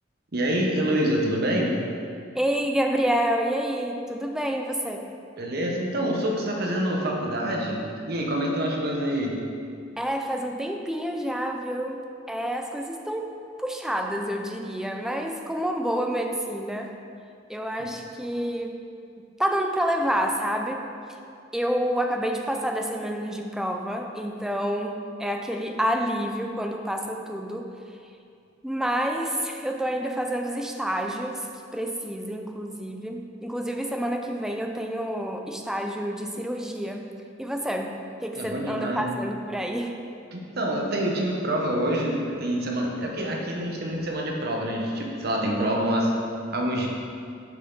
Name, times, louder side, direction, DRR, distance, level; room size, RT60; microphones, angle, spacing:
voice 1, 0.3-1.8 5.4-7.8 8.1-9.3 38.3-39.2 40.3-46.1 46.5-46.9, right 1 dB, 55° right, -1 dB, 1.1 m, -26 dB
voice 2, 2.3-5.1 10.0-13.3 13.6-16.9 17.5-18.8 19.4-20.8 21.5-27.7 28.6-31.5 31.7-37.1 37.4-38.0 38.2-39.9, equal, 5° right, 3 dB, 0.4 m, -28 dB
7.3 x 5.7 x 3.9 m, 2.4 s
head